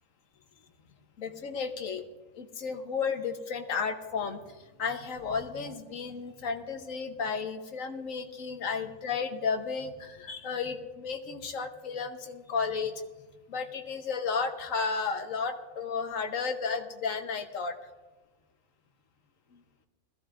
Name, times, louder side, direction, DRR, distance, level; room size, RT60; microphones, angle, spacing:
voice 1, 1.2-2.0 2.3-4.4 4.8-12.9 13.5-17.8 19.5-19.6, left 5 dB, 70° left, 6 dB, 1.3 m, -33 dB
20.0 x 14.0 x 2.5 m, 1.2 s
omnidirectional pair, 1.5 m